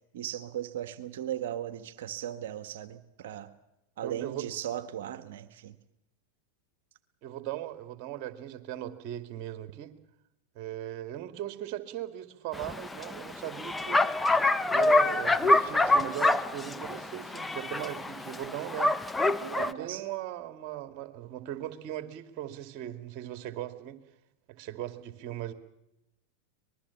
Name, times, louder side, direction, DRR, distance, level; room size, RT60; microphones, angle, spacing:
voice 1, 0.1-3.5 4.0-5.8 19.4-20.0, right 11 dB, 65° right, 11 dB, 1.4 m, -37 dB
voice 2, 4.0-4.4 7.2-9.9 10.5-14.0 14.7-19.0 19.6-24.0 24.5-25.5, right 12 dB, 50° right, 9 dB, 2.4 m, -38 dB
Bark, 12.5-19.7, left 2 dB, 10° left, 1.1 m, -26 dB
25.5 x 21.0 x 7.2 m, 0.87 s
hypercardioid pair, 95°, 0 cm